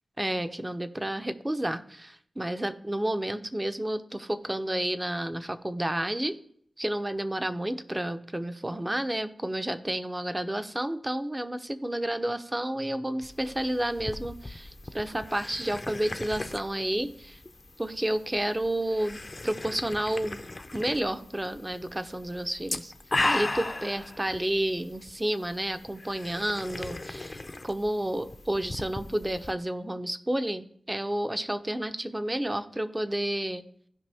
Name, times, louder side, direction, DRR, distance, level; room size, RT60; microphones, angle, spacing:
voice 1, 0.2-6.4 6.8-17.4 17.8-20.4 20.7-22.9 23.2-33.6, right 1 dB, 20° right, 9 dB, 0.7 m, -31 dB
sound 1, 13.2-29.5, left 2 dB, 35° left, 0.6 m, -37 dB
15.0 x 5.1 x 3.5 m, 0.64 s
wide cardioid pair, 65°, 0 cm